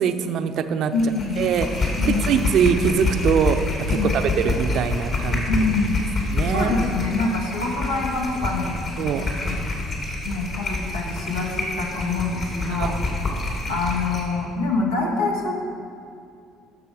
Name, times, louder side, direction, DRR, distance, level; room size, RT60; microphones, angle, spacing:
voice 1, 0.0-0.9 1.4-1.9 2.3-3.6 3.9-5.4 6.3-6.7 9.0-9.2 12.8-12.9, right 7 dB, 50° right, 8 dB, 0.6 m, -22 dB
voice 2, 0.9-1.5 2.0-2.5 3.9-4.2 5.2-6.0 6.5-8.8 9.2-9.7 10.2-13.0 13.7-15.5, left 3 dB, 75° left, -2 dB, 1.3 m, -25 dB
sound 1, 1.0-14.3, left 2 dB, 45° left, 2.5 m, -27 dB
12.5 x 6.8 x 4.9 m, 2.4 s
figure-of-eight pair, 55°, 0 cm